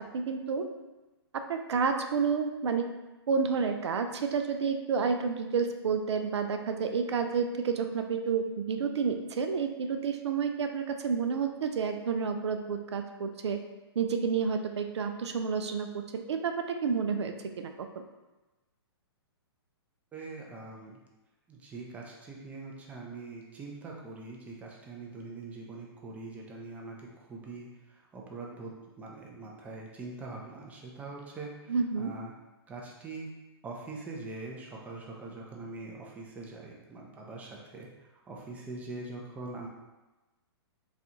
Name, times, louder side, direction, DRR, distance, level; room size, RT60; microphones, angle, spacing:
voice 1, 0.1-0.7 1.3-2.9 3.3-13.6 14.0-16.0 16.3-16.5 16.8-17.7 31.7-32.1, right 5 dB, 85° right, 6 dB, 0.4 m, -30 dB
voice 2, 20.1-21.0 21.5-32.3 32.7-33.3 33.6-39.7, right 3 dB, 10° right, -1 dB, 0.4 m, -43 dB
4.0 x 2.3 x 2.8 m, 1.1 s
hypercardioid pair, 140°, 14 cm